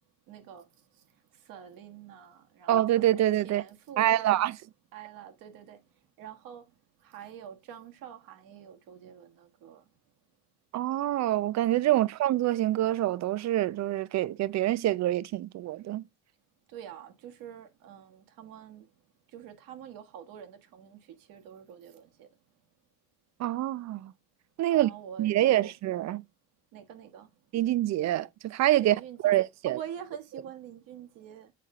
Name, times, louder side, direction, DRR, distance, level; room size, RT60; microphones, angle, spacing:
voice 1, 0.3-1.0 1.3-2.9 3.4-4.5 4.9-5.8 6.2-6.7 7.0-9.8 11.9-12.1 16.7-18.9 19.3-22.3 24.7-25.7 26.7-27.3 28.8-31.5, right 9 dB, 75° right, 1.5 m, -46 dB
voice 2, 2.7-3.6 4.0-4.6 10.7-16.0 23.4-24.1 24.6-24.9 25.2-26.2 27.5-29.8, right 14 dB, 50° right, 0.6 m, -26 dB
8.4 x 4.4 x 3.7 m
cardioid pair, 95°, 34 cm